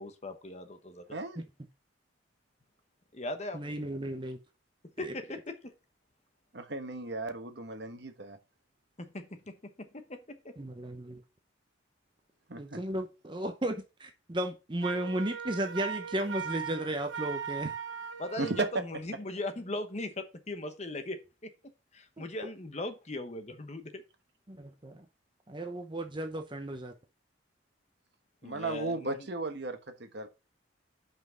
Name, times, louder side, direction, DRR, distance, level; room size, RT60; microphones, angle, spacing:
voice 1, 0.0-1.2 3.1-3.7 5.0-5.7 9.0-10.5 18.2-21.5 21.9-24.0 28.4-29.3, left 1 dB, 35° left, 1.0 m, -39 dB
voice 2, 1.1-1.4 6.5-8.4 12.5-12.8 18.4-18.7 28.4-30.3, right 2 dB, 60° right, 1.2 m, -35 dB
voice 3, 3.5-4.4 5.0-5.1 10.6-11.2 12.6-17.7 22.2-22.5 24.5-25.0 25.5-26.9, right 1 dB, 25° right, 0.7 m, -35 dB
Wind instrument woodwind instrument, 14.8-18.8, right 7 dB, 75° right, 0.9 m, -39 dB
5.8 x 5.4 x 6.7 m
head